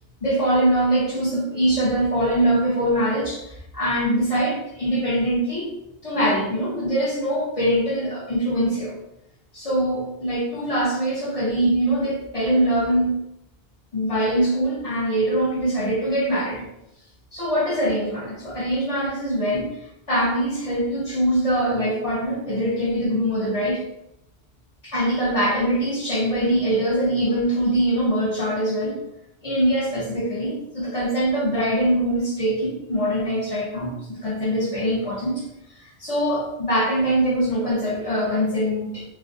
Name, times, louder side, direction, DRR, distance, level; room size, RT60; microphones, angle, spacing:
voice 1, 0.2-5.7 6.0-8.9 9.5-13.1 13.9-16.6 17.3-19.7 20.1-23.8 24.8-29.0 29.4-33.9 34.2-35.4 36.0-39.0, right 1 dB, 45° left, -5 dB, 0.5 m, -23 dB
2.4 x 2.1 x 2.5 m, 0.85 s
omnidirectional pair, 1.1 m